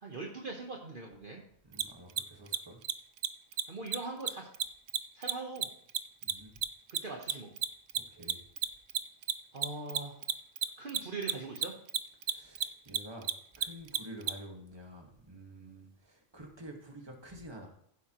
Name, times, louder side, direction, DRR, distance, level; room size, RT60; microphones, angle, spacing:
voice 1, 0.0-1.4 3.7-4.5 5.1-5.7 7.0-7.5 9.5-10.3 10.8-11.7, right 3 dB, 45° right, 1 dB, 1.2 m, -41 dB
voice 2, 1.6-2.8 6.2-6.5 7.9-8.4 12.2-17.7, right 1 dB, 20° right, 1 dB, 1.6 m, -49 dB
Mechanisms, 1.7-1.8 2.1-2.2 2.5-2.6 2.8-2.9 3.2-3.3 3.5-3.6 3.9-4.0 4.3-7.0 7.2-14.3, right 10 dB, 65° right, 0.8 m, -31 dB
15.0 x 8.3 x 3.0 m, 0.67 s
omnidirectional pair, 1.3 m